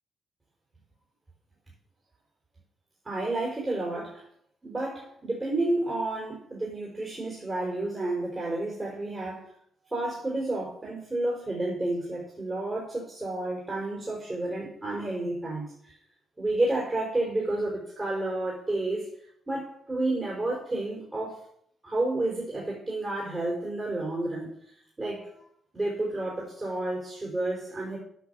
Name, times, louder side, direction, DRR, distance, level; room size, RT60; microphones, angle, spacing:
voice 1, 3.0-4.2 4.6-9.5 9.9-15.9 16.4-19.1 19.5-21.4 21.8-24.5 25.0-25.3 25.7-28.0, right 2 dB, 30° right, -3 dB, 4.7 m, -30 dB
8.4 x 6.1 x 7.0 m, 0.66 s
hypercardioid pair, 40°, 0 cm